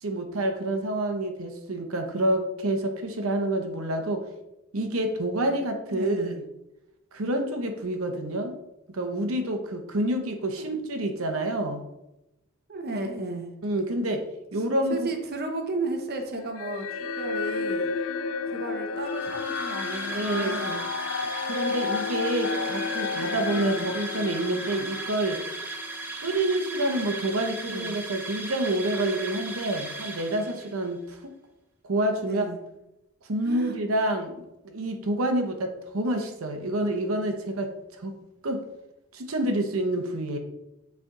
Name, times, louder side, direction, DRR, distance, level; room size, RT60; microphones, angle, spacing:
voice 1, 0.0-4.3 4.7-6.4 7.1-8.6 8.9-11.8 13.6-14.3 14.5-15.1 20.0-20.6 21.5-25.4 26.2-31.2 31.8-32.5 33.3-34.3 34.6-38.1 38.4-38.6 39.1-40.4, right 1 dB, 90° right, 5 dB, 0.8 m, -28 dB
voice 2, 5.9-6.4 10.6-10.7 12.7-13.5 14.9-16.9 17.2-17.9 18.5-20.9 23.6-23.9 27.7-28.0 32.2-32.6 33.4-33.8, right 2 dB, 50° right, 4 dB, 0.8 m, -33 dB
sound 1, 16.6-26.1, left 4 dB, 70° left, 0.4 m, -31 dB
sound 2, 19.0-30.9, right 3 dB, 10° right, 0.6 m, -37 dB
7.8 x 3.4 x 3.7 m, 0.92 s
head